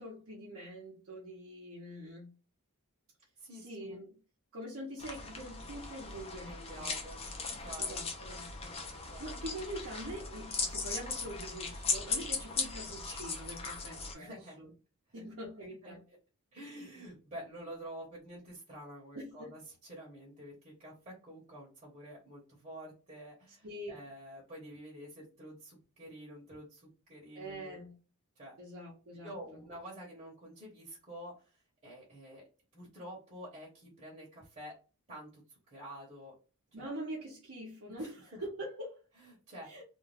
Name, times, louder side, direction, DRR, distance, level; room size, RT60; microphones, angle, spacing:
voice 1, 0.0-2.3 3.5-4.2 4.5-6.9 7.8-14.7 15.1-16.0 19.1-19.5 23.6-24.0 27.3-27.9 28.6-29.6 36.7-39.0 39.6-39.8, right 1 dB, 65° right, 0.8 m, -44 dB
voice 2, 3.4-4.0 6.4-7.2 7.6-8.0 9.1-9.4 14.1-14.6 15.2-16.2 16.5-27.8 28.4-28.5 29.2-32.5 32.7-34.8 35.1-36.3 36.8-36.9 37.9-38.4 39.2-39.7, equal, 30° right, 1.0 m, -49 dB
sound 1, 5.0-14.1, left 4 dB, 25° left, 0.6 m, -38 dB
2.6 x 2.3 x 3.3 m
head